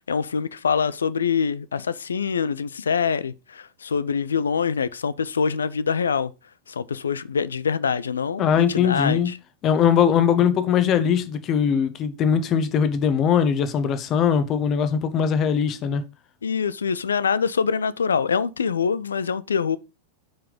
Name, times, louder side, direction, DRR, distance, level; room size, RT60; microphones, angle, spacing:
voice 1, 0.0-6.3 6.7-9.4 16.4-19.8, left 6 dB, 70° left, 0.5 m, -24 dB
voice 2, 8.4-9.3 9.6-16.0, left 7 dB, 35° left, 1.2 m, -21 dB
7.4 x 4.8 x 5.1 m
figure-of-eight pair, 90°, 0 cm